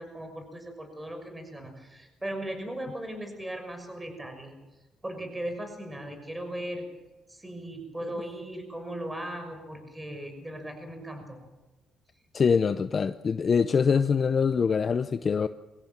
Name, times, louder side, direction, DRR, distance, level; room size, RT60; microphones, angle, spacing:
voice 1, 0.0-4.5 5.0-6.8 7.3-11.4, right 1 dB, 15° right, 5 dB, 6.1 m, -38 dB
voice 2, 12.3-15.5, left 6 dB, 45° left, 11 dB, 0.7 m, -24 dB
23.5 x 17.0 x 7.4 m, 1.1 s
cardioid pair, 90°, 0 cm